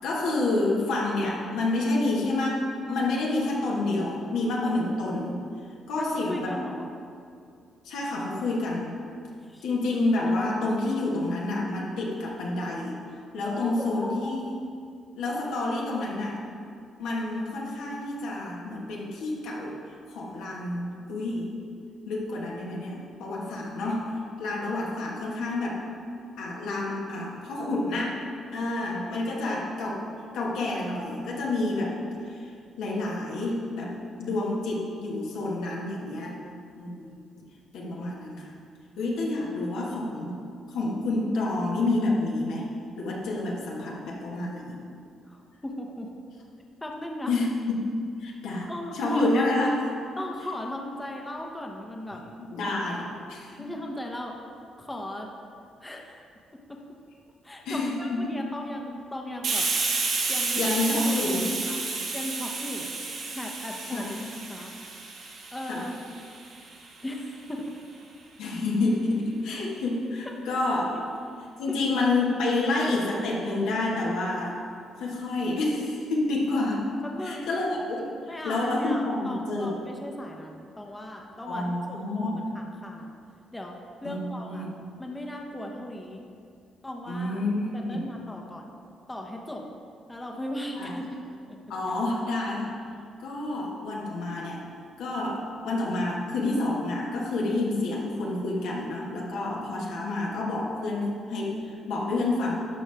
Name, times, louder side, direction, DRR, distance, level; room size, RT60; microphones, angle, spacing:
voice 1, 0.0-2.6 2.9-5.4 5.9-6.6 7.8-9.0 9.6-13.0 13.3-14.4 15.1-16.4 17.0-19.8 20.1-21.5 22.1-25.8 26.4-28.2 28.5-30.0 30.3-32.0 32.2-36.4 36.8-37.2 37.7-38.5 39.0-40.4 40.7-42.7 42.9-44.8 47.3-47.9 48.2-49.8 52.1-53.7 57.6-58.3 60.5-61.5 63.9-64.2 65.6-65.9 68.4-70.9 71.6-74.6 75.0-76.9 77.2-79.7 81.4-82.5 84.0-84.8 87.1-88.1 90.7-91.0 91.7-92.8 93.2-94.6 95.0-102.5, left 2 dB, 90° left, -3 dB, 1.6 m, -29 dB
voice 2, 6.0-6.9 9.4-9.6 13.4-14.3 45.3-46.1 46.8-47.4 48.7-49.5 50.2-52.2 53.6-54.3 54.8-55.3 55.8-56.2 56.7-56.8 57.4-59.7 60.3-60.8 61.0-61.2 61.5-61.8 62.1-62.9 63.3-64.7 65.5-66.2 67.0-67.6 70.3-70.4 70.9-71.0 71.7-71.8 77.0-77.5 78.3-83.1 83.5-83.8 84.0-84.7 85.0-86.2 86.8-87.4 87.7-88.8 89.1-89.6 90.1-91.1 91.5-91.6, left 1 dB, 15° left, 1 dB, 0.9 m, -37 dB
Hiss, 59.4-66.8, right 3 dB, 75° right, 1.6 m, -31 dB
12.5 x 5.4 x 3.5 m, 2.4 s
cardioid pair, 90°, 0 cm